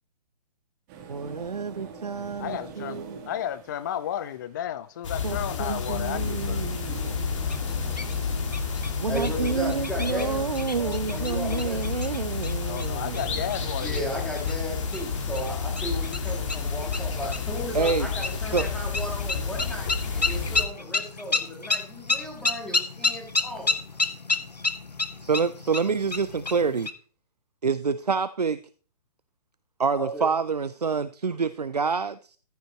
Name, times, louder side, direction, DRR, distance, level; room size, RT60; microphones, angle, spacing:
sound 1, 0.9-19.5, right 5 dB, 30° right, 1.7 m, -47 dB
voice 1, 1.1-3.2 5.2-7.5 9.0-13.4 17.7-18.1 18.5-18.7 25.2-26.9 27.6-28.6 29.8-32.4, right 5 dB, 75° right, 0.5 m, -28 dB
voice 2, 2.4-3.0 3.3-6.7 12.7-14.2, left 10 dB, 30° left, 0.4 m, -33 dB
sound 2, 5.0-20.6, left 5 dB, 50° left, 1.8 m, -30 dB
sound 3, 7.4-26.9, left 3 dB, 85° left, 1.0 m, -32 dB
voice 3, 9.1-10.5 10.8-12.0 13.8-23.8 29.9-30.3, equal, 5° left, 2.2 m, -35 dB
14.5 x 5.1 x 4.3 m
figure-of-eight pair, 125°, 21 cm